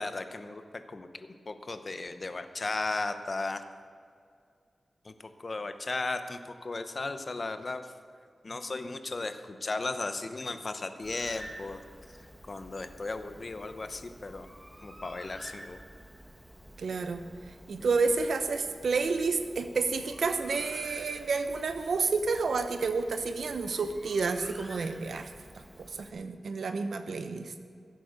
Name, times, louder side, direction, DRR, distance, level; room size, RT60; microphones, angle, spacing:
voice 1, 0.0-3.6 5.0-7.9 8.4-11.8 12.1-14.5 14.8-15.8, left 3 dB, 40° left, 9 dB, 0.9 m, -36 dB
Bird, 11.0-26.1, equal, 5° right, 1.3 m, -50 dB
voice 2, 16.8-17.2 17.7-25.3 25.8-27.5, right 4 dB, 85° right, 8 dB, 1.0 m, -30 dB
15.5 x 8.5 x 6.6 m, 2.2 s
wide cardioid pair, 95°, 0 cm